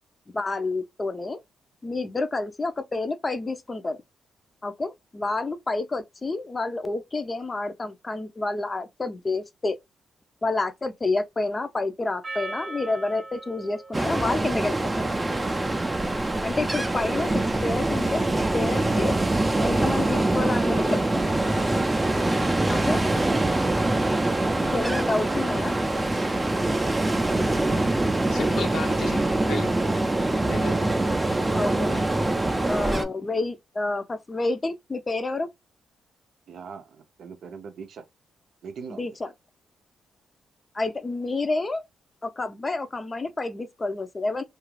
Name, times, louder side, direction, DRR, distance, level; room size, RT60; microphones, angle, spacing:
voice 1, 0.3-1.4 1.8-4.0 4.6-9.8 10.4-15.1 16.4-18.2 18.5-19.1 19.6-21.2 22.7-23.0 24.6-25.8 31.5-31.9 32.7-35.5 38.9-39.3 40.7-41.8 42.2-44.4, left 3 dB, 30° left, 0.5 m, -29 dB
Percussion, 12.2-16.8, right 3 dB, 45° right, 0.8 m, -41 dB
Ocean, 13.9-33.0, right 2 dB, 20° right, 0.5 m, -24 dB
voice 2, 28.3-29.7 30.4-30.9 31.9-32.1, left 3 dB, 70° left, 0.8 m, -33 dB
voice 3, 36.5-38.0 38.6-39.1, right 6 dB, 70° right, 0.5 m, -41 dB
2.4 x 2.3 x 3.1 m
cardioid pair, 70°, 0 cm